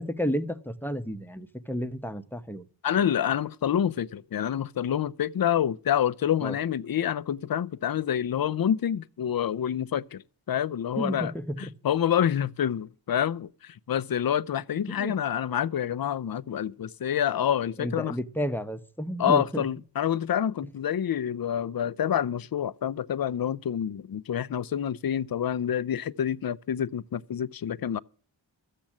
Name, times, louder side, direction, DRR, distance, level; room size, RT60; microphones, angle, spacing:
voice 1, 0.0-2.6 6.4-6.6 11.0-11.7 14.9-15.2 17.8-19.7, equal, 5° left, 0.9 m, -32 dB
voice 2, 2.8-10.2 10.5-11.3 11.8-18.1 19.2-28.0, left 9 dB, 50° left, 0.5 m, -27 dB
13.5 x 7.6 x 7.3 m
wide cardioid pair, 75°, 46 cm